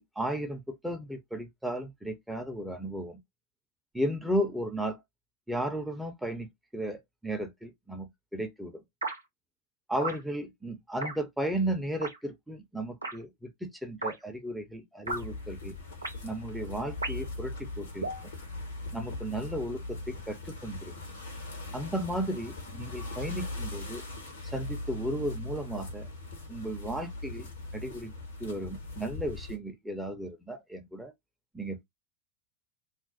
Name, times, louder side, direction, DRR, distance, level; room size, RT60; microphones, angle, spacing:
voice 1, 0.0-3.2 3.9-5.0 5.5-8.8 9.9-15.7 16.2-18.3 18.9-20.9 21.7-24.0 24.4-26.1 26.5-28.1 28.4-31.1 31.5-31.8, right 1 dB, 5° right, 0.7 m, -35 dB
sound 1, 9.0-9.2 10.0-10.2 11.0-11.2 12.0-12.2 13.0-13.2 14.0-14.1 15.1-15.2 16.0-16.2 17.0-17.3 18.0-18.2, right 2 dB, 80° right, 0.6 m, -34 dB
sound 2, 15.0-29.6, left 2 dB, 70° left, 1.0 m, -40 dB
2.5 x 2.0 x 3.9 m
figure-of-eight pair, 85°, 0 cm